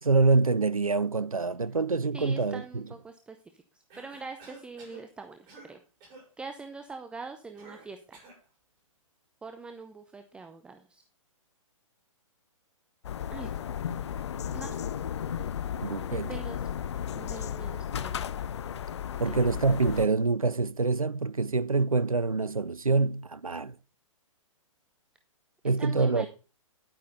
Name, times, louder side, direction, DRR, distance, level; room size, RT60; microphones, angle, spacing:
voice 1, 0.0-2.8 15.8-16.3 19.2-23.7 25.6-26.3, right 3 dB, 90° right, 0.5 m, -26 dB
voice 2, 2.1-5.8 6.4-8.2 9.4-11.0 13.3-13.5 14.5-14.7 16.1-16.7 17.1-18.2 19.3-19.4 25.8-26.3, right 4 dB, 5° right, 0.6 m, -43 dB
Cough, 3.9-5.1 5.5-5.7 6.0-6.3 7.6-8.4, right 3 dB, 30° right, 6.9 m, -50 dB
sound 1, 13.0-20.1, left 9 dB, 55° left, 0.6 m, -34 dB
10.5 x 8.8 x 4.0 m
figure-of-eight pair, 120°, 17 cm